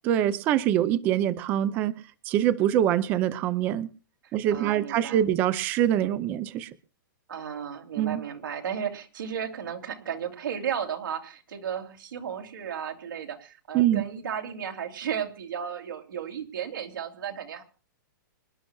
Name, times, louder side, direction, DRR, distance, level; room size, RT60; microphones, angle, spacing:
voice 1, 0.0-1.9 2.3-3.9 4.3-6.7 8.0-8.2 13.7-14.1, right 11 dB, 15° right, 16 dB, 0.5 m, -24 dB
voice 2, 4.5-5.2 7.3-17.6, right 8 dB, 80° right, 3 dB, 2.8 m, -34 dB
26.0 x 11.5 x 2.3 m, 0.33 s
hypercardioid pair, 175°, 11 cm